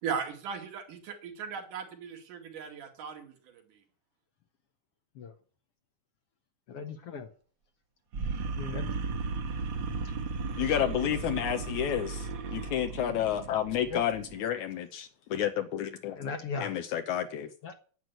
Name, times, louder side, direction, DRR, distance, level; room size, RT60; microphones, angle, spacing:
voice 1, 0.0-3.6, right 6 dB, 85° right, 3.7 m, -37 dB
voice 2, 6.7-7.3 8.5-9.0 10.0-10.2 13.8-14.0 16.1-16.7 17.6-17.7, left 5 dB, 60° left, 1.7 m, -38 dB
sound 1, 8.1-14.4, right 4 dB, 55° right, 1.5 m, -35 dB
voice 3, 10.6-16.2 16.6-17.5, left 10 dB, 75° left, 2.2 m, -30 dB
11.0 x 8.0 x 9.2 m
omnidirectional pair, 3.5 m